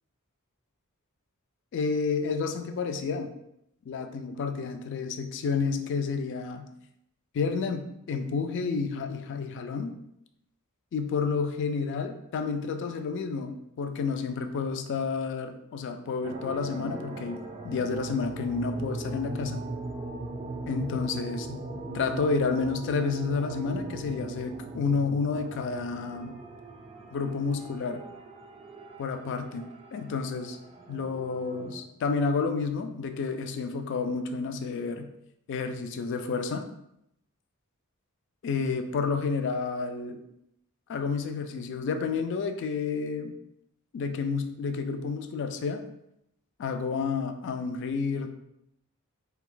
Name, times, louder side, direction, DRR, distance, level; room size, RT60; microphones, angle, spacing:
voice 1, 1.7-3.3 3.9-6.7 7.3-10.0 10.9-19.6 20.7-21.6 21.9-26.4 27.1-28.0 29.0-30.6 30.9-35.1 35.5-36.7 38.4-40.2 40.9-43.3 43.9-45.8 46.6-48.3, left 5 dB, 55° left, 7 dB, 0.3 m, -30 dB
sound 1, 16.2-31.8, right 2 dB, 25° right, 0.3 m, -39 dB
2.6 x 2.3 x 3.8 m, 0.79 s
head